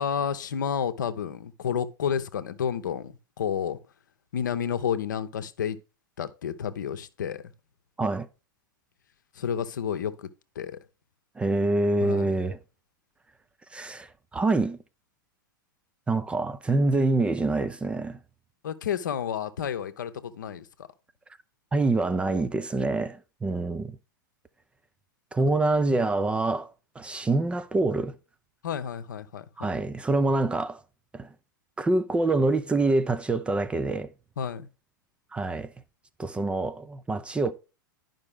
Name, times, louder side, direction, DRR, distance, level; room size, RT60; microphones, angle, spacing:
voice 1, 0.0-3.8 4.3-5.8 6.2-7.4 9.4-10.3 10.6-10.8 12.0-12.3 18.6-20.9 28.6-29.7 34.4-34.7, left 8 dB, 60° left, 0.8 m, -30 dB
voice 2, 11.4-12.6 13.7-14.8 16.1-18.2 21.7-24.0 25.3-28.1 29.6-30.8 31.1-31.3 31.8-34.1 35.3-35.7 36.2-37.5, right 2 dB, 10° right, 0.4 m, -26 dB
10.5 x 5.4 x 3.5 m
figure-of-eight pair, 95°, 11 cm